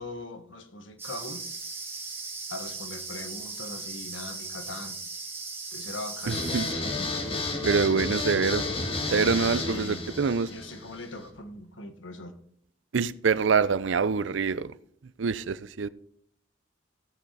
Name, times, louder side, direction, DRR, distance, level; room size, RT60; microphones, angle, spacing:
voice 1, 0.0-1.4 2.5-5.0 5.7-6.4 9.5-10.1 10.4-12.4, left 2 dB, 85° left, 1.4 m, -40 dB
sound 1, 1.0-6.7, right 4 dB, 10° right, 2.9 m, -38 dB
sound 2, 6.3-11.2, left 2 dB, 30° left, 1.7 m, -31 dB
voice 2, 6.3-6.7 7.6-8.6 9.1-10.5 12.9-14.7 15.2-15.9, right 5 dB, 75° right, 0.5 m, -25 dB
16.5 x 6.6 x 4.0 m
head